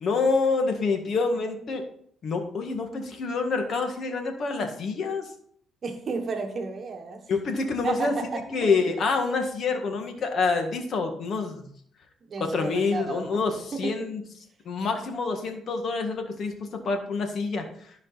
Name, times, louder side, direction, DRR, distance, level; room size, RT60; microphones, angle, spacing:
voice 1, 0.0-1.8 2.2-5.3 7.3-8.1 8.5-11.7 12.4-14.2 14.6-17.6, left 4 dB, 60° left, 5 dB, 1.7 m, -27 dB
voice 2, 5.8-7.2 7.8-8.7 12.3-13.4 13.7-14.1, right 4 dB, 45° right, 4 dB, 1.2 m, -32 dB
13.0 x 5.2 x 4.1 m, 0.63 s
cardioid pair, 90°, 0 cm